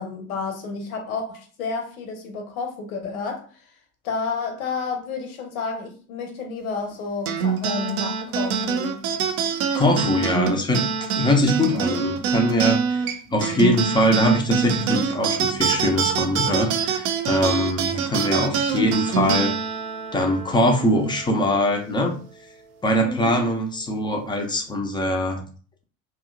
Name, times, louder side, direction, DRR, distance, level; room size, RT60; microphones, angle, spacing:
voice 1, 0.0-3.4 4.0-9.0 23.0-23.4, left 4 dB, 70° left, 3 dB, 0.8 m, -30 dB
sound 1, 7.3-22.0, right 6 dB, 50° right, 0.5 m, -25 dB
voice 2, 9.7-19.5 20.1-22.1 22.8-25.4, left 1 dB, 10° left, 3 dB, 0.4 m, -22 dB
2.7 x 2.2 x 2.5 m, 0.40 s
figure-of-eight pair, 60°, 44 cm